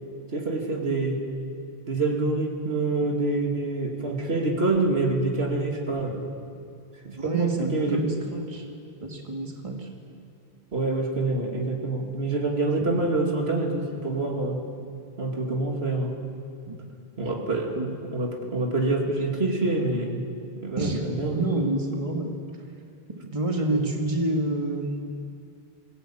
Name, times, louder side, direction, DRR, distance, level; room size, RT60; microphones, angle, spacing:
voice 1, 0.3-1.2 1.9-6.3 7.0-8.1 10.7-14.6 15.2-16.2 17.2-17.8 18.1-20.2 20.6-21.7 23.7-23.9, right 2 dB, 85° right, 1 dB, 2.8 m, -26 dB
voice 2, 7.2-8.7 9.0-9.9 12.8-12.9 13.4-13.5 16.7-17.0 17.7-17.9 20.8-22.4 23.2-25.1, right 1 dB, 30° right, 2 dB, 2.0 m, -29 dB
22.5 x 17.5 x 8.9 m, 2.4 s
omnidirectional pair, 1.0 m